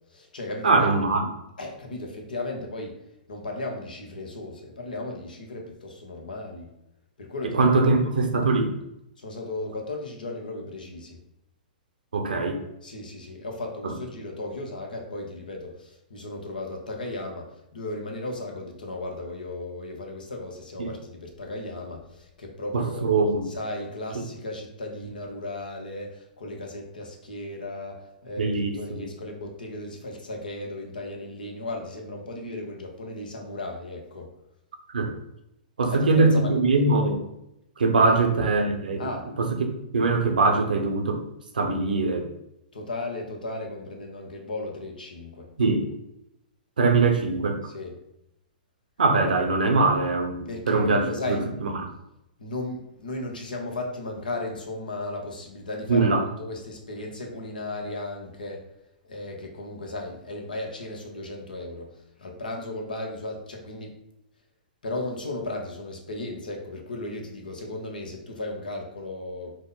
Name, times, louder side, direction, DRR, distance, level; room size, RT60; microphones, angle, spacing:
voice 1, 0.1-0.9 1.6-3.0 3.3-6.7 7.2-7.9 9.2-11.2 12.8-23.1 23.4-34.3 35.9-36.6 38.0-38.2 39.0-39.3 42.7-45.5 47.6-48.0 50.5-51.4 52.4-58.6 59.1-64.0 64.8-69.5, left 2 dB, 80° left, 1 dB, 1.0 m, -35 dB
voice 2, 0.6-1.2 7.5-8.7 12.1-12.6 20.8-20.9 22.7-23.4 28.4-29.0 34.9-35.1 35.8-37.2 37.8-39.0 39.4-39.5 39.9-41.2 41.5-42.2 45.6-45.9 46.8-47.6 49.0-51.4 51.6-51.7 55.9-56.2, right 3 dB, 75° right, 4 dB, 0.8 m, -22 dB
5.0 x 2.2 x 3.9 m, 0.83 s
hypercardioid pair, 115°, 5 cm